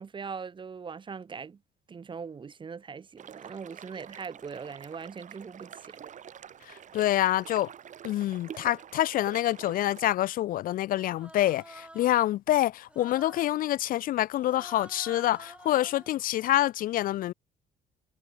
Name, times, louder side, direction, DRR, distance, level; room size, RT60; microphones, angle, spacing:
voice 1, 0.0-1.6 1.9-6.0, right 5 dB, 30° right, 1.3 m, -41 dB
sound 1, 3.2-10.1, right 9 dB, 45° right, 2.3 m, -47 dB
voice 2, 6.7-7.7 8.0-17.3, left 14 dB, 55° left, 0.4 m, -27 dB
Human voice, 10.9-12.2 12.9-13.6 14.4-16.1, right 1 dB, 5° right, 3.5 m, -49 dB
cardioid pair, 110°, 17 cm